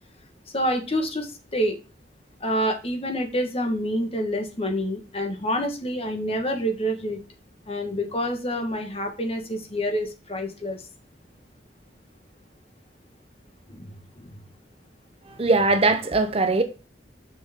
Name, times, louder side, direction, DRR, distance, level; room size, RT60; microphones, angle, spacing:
voice 1, 0.5-1.8 2.4-7.2 7.7-10.9 13.7-14.3, equal, 35° left, 1.4 m, -27 dB
voice 2, 15.3-16.6, right 3 dB, 35° right, 0.7 m, -21 dB
6.2 x 5.9 x 3.6 m
head